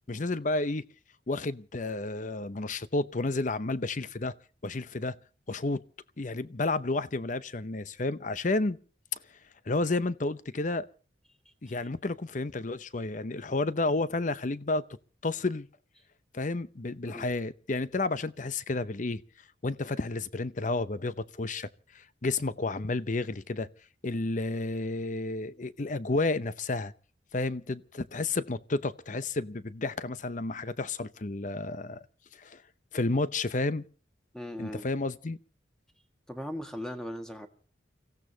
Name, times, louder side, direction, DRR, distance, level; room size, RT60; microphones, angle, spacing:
voice 1, 0.1-0.8 1.3-4.3 4.6-5.2 5.5-5.8 6.2-8.8 9.7-10.9 11.6-14.8 15.2-15.7 16.3-19.2 19.6-21.7 21.9-23.7 24.0-26.9 27.3-32.0 32.3-32.6 32.9-33.8 34.6-35.4, left 2 dB, 45° left, 0.7 m, -31 dB
voice 2, 34.3-34.9 36.3-37.5, equal, 5° left, 1.6 m, -39 dB
29.5 x 16.0 x 2.9 m
head